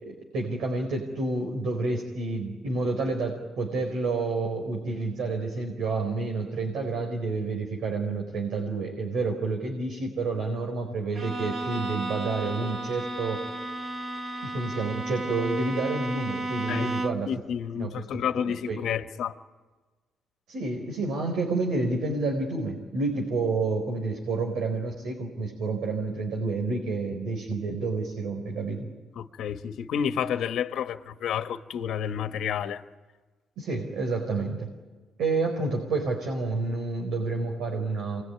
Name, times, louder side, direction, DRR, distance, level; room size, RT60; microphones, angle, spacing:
voice 1, 0.0-13.4 14.4-17.3 17.8-17.9 18.4-18.8 20.5-28.9 33.6-34.7 35.2-38.2, right 3 dB, 75° right, 2 dB, 4.4 m, -29 dB
Bowed string instrument, 11.1-17.4, right 1 dB, 40° right, 1.7 m, -33 dB
voice 2, 17.3-19.3 29.1-32.8, left 8 dB, 75° left, 8 dB, 1.2 m, -30 dB
27.0 x 21.0 x 9.8 m, 1.3 s
cardioid pair, 90°, 0 cm